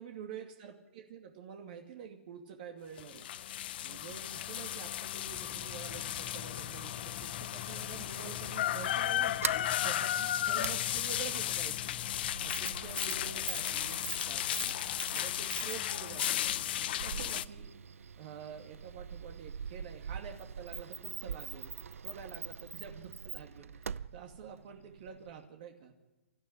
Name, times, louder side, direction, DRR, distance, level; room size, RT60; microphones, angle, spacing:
voice 1, 0.0-3.3 3.8-9.4 9.7-11.7 12.4-17.7 18.2-21.7 22.0-25.9, right 7 dB, 40° right, 3 dB, 2.5 m, -48 dB
sound 1, 3.0-17.5, left 12 dB, 45° left, 0.7 m, -35 dB
sound 2, 5.3-12.3, left 10 dB, 5° left, 1.0 m, -49 dB
Sliding door, 9.1-25.5, right 7 dB, 70° right, 0.7 m, -43 dB
28.5 x 14.0 x 10.0 m, 1.2 s
hypercardioid pair, 150°, 8 cm